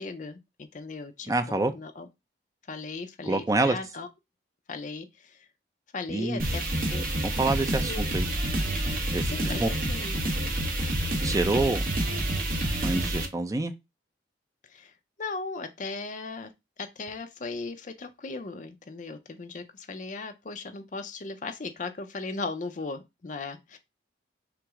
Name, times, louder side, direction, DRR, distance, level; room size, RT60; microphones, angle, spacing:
voice 1, 0.0-2.1 2.7-4.1 4.7-5.5 5.9-6.6 6.9-7.0 7.9-8.1 9.3-10.1 14.7-14.9 15.2-16.5 16.8-23.8, left 3 dB, 45° left, 0.5 m, -37 dB
voice 2, 1.3-1.7 3.3-3.8 6.1-6.4 7.2-8.3 9.1-9.3 9.6-9.7 11.2-11.9 12.8-13.7, right 2 dB, 20° right, 0.4 m, -26 dB
sound 1, 6.4-13.3, right 1 dB, 50° right, 1.0 m, -28 dB
5.7 x 2.0 x 3.6 m
head